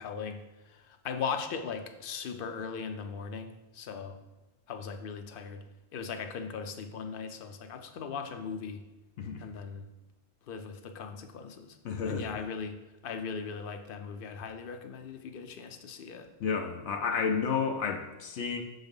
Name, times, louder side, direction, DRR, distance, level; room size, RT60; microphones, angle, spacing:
voice 1, 0.0-4.2 4.7-5.6 5.9-8.8 9.4-9.9 10.5-11.8 12.1-12.8 13.0-16.3, left 6 dB, 55° left, 7 dB, 0.8 m, -39 dB
voice 2, 11.8-12.4 16.4-18.6, left 6 dB, 80° left, 4 dB, 1.0 m, -31 dB
6.2 x 4.0 x 5.2 m, 1.1 s
omnidirectional pair, 1.2 m